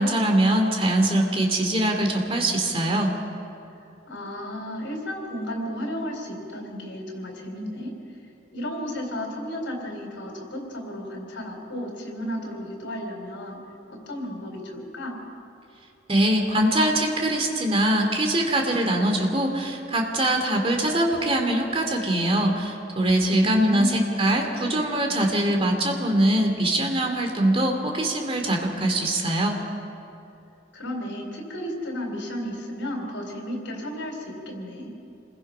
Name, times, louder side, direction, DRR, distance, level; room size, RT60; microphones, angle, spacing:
voice 1, 0.0-3.1 16.1-29.6, right 1 dB, 30° right, 3 dB, 2.6 m, -22 dB
voice 2, 4.1-7.9 8.5-13.6 13.9-15.2 23.4-25.1 30.7-34.9, equal, 90° left, 2 dB, 4.0 m, -33 dB
27.0 x 21.0 x 5.7 m, 2.6 s
head